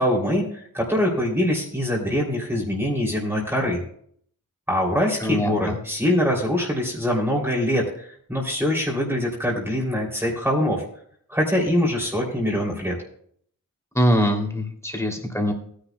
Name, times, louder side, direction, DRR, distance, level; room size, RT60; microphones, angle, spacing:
voice 1, 0.0-3.8 4.7-10.8 11.3-12.9, left 1 dB, 5° right, -3 dB, 3.1 m, -23 dB
voice 2, 5.2-5.7 13.9-15.5, equal, 10° left, 2 dB, 2.9 m, -23 dB
18.0 x 10.5 x 2.3 m, 0.62 s
cardioid pair, 65°, 33 cm